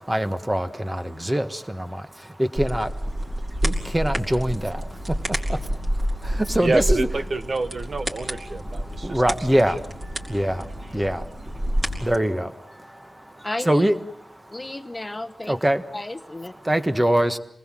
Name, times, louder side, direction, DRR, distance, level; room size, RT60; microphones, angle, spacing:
voice 1, 0.1-2.0 2.4-2.9 3.6-4.8 6.2-7.1 9.0-9.8 10.3-10.6 10.9-11.2 12.0-12.5 13.6-13.9 15.5-15.8 16.6-17.4, right 1 dB, 15° right, 9 dB, 1.4 m, -23 dB
sound 1, 2.6-12.2, equal, 35° right, 4.3 m, -29 dB
voice 2, 6.6-9.2 9.5-9.6, right 3 dB, 50° right, 9 dB, 1.3 m, -27 dB
voice 3, 13.4-13.9 14.5-15.6 15.9-16.5, left 2 dB, 20° left, 7 dB, 1.2 m, -33 dB
28.0 x 20.0 x 7.5 m, 0.75 s
wide cardioid pair, 125°, 0 cm